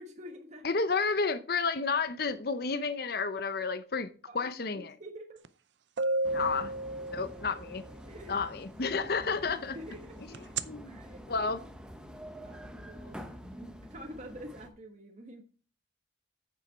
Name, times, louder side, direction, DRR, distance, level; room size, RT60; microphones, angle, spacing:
voice 1, 0.0-0.8 4.3-5.4 6.2-6.4 7.0-7.3 8.1-8.5 9.7-10.1 10.5-11.5 12.3-15.4, equal, 40° right, 1.3 m, -48 dB
voice 2, 0.6-4.1 4.3-4.9 6.3-6.7 7.1-7.8 8.3-9.8 10.6-11.0 11.3-11.6, left 4 dB, 55° left, 0.7 m, -31 dB
sound 1, 5.4-5.5 6.0-7.7 10.3-10.6, right 2 dB, 75° right, 0.6 m, -31 dB
sound 2, 6.2-14.7, equal, 5° right, 0.9 m, -47 dB
9.0 x 7.0 x 4.5 m
head